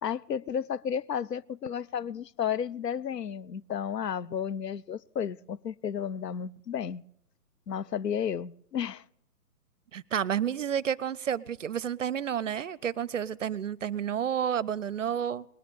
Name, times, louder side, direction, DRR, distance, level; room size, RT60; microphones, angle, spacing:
voice 1, 0.0-7.0 7.7-9.0, left 8 dB, 90° left, 0.5 m, -32 dB
voice 2, 9.9-15.5, right 9 dB, 55° right, 0.5 m, -30 dB
19.5 x 9.9 x 6.7 m
figure-of-eight pair, 135°, 47 cm